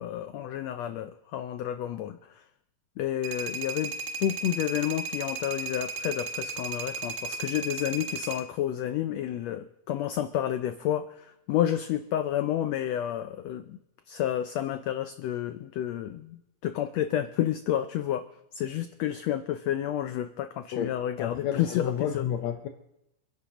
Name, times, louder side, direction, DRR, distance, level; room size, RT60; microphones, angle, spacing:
voice 1, 0.0-2.2 3.0-3.9 4.2-13.8 14.1-18.3 18.5-22.2, left 11 dB, 90° left, 9 dB, 1.5 m, -30 dB
sound 1, 3.2-8.4, right 4 dB, 80° right, 2.7 m, -35 dB
voice 2, 20.7-22.7, left 9 dB, 70° left, 5 dB, 1.8 m, -31 dB
28.0 x 11.0 x 3.0 m, 0.87 s
omnidirectional pair, 3.7 m